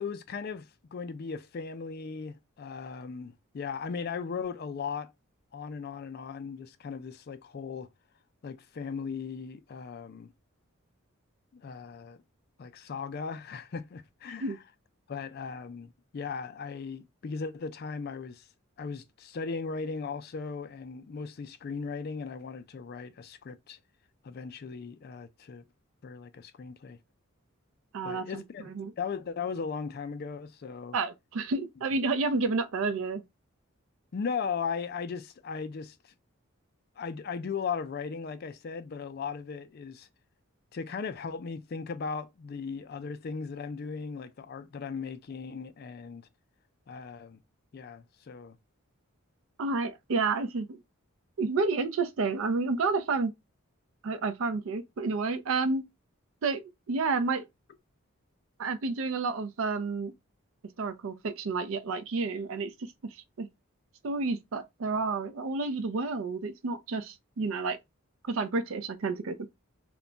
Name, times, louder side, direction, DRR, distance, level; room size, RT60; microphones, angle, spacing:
voice 1, 0.0-5.1 5.5-7.9 8.4-10.3 11.5-12.2 12.6-14.6 15.1-18.5 18.8-23.8 24.2-25.6 26.0-27.0 28.0-28.7 29.0-31.0 34.1-36.1 37.0-40.1 40.7-46.3 46.9-47.4 47.7-48.6, left 5 dB, 45° left, 0.3 m, -37 dB
voice 2, 27.9-28.4 28.7-28.9 30.9-33.2 49.6-50.8 51.4-53.3 54.0-55.8 56.4-56.6 56.9-57.4 58.6-60.1 60.8-62.7 63.4-63.5 64.0-67.8 68.3-69.5, right 4 dB, 70° right, 0.4 m, -30 dB
2.2 x 2.2 x 3.7 m
head